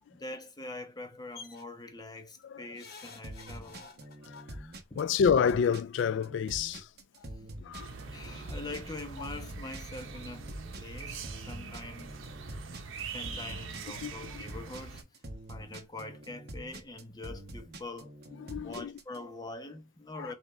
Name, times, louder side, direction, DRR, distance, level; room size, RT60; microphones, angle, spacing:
voice 1, 0.1-3.9 4.9-5.1 8.1-12.2 13.1-15.1 15.5-18.2 18.5-20.4, left 2 dB, 20° left, 0.7 m, -44 dB
sound 1, 1.3-1.6 2.8-4.4 5.6-5.7 6.0-6.1, left 5 dB, 50° left, 1.0 m, -49 dB
sound 2, 3.2-19.2, right 1 dB, 50° right, 1.0 m, -45 dB
voice 2, 4.2-4.6 5.0-6.9 7.6-7.9 9.2-9.3 11.6-11.7 14.0-14.4 18.4-18.9 20.2-20.3, left 6 dB, 75° left, 0.3 m, -29 dB
sound 3, 7.7-15.0, right 5 dB, 90° right, 0.8 m, -43 dB
5.1 x 2.4 x 4.2 m
head